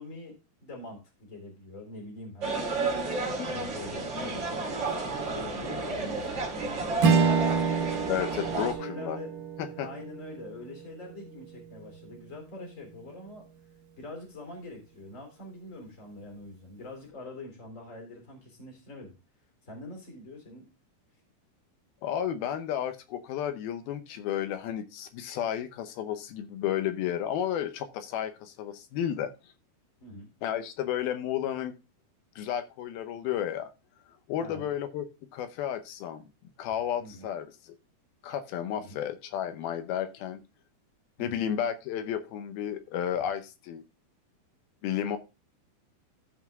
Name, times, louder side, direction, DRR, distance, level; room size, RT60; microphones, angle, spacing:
voice 1, 0.0-2.6 3.4-7.5 8.4-9.3 9.8-13.5 14.0-19.1 19.6-20.6 30.0-30.3 34.4-34.7 37.0-37.3 38.7-38.9 41.2-41.4, left 2 dB, 20° left, 2 dB, 3.2 m, -44 dB
sound 1, 2.4-8.7, right 3 dB, 35° right, 2.4 m, -32 dB
Strum, 7.0-11.6, right 5 dB, 65° right, 2.7 m, -28 dB
voice 2, 8.1-9.2 9.6-9.9 22.0-29.5 30.4-31.7 32.4-33.7 34.3-35.1 35.3-36.3 36.6-37.8 38.2-40.4 41.2-43.8 44.8-45.2, left 10 dB, 75° left, 9 dB, 2.5 m, -32 dB
14.5 x 5.3 x 3.6 m, 0.28 s
omnidirectional pair, 4.7 m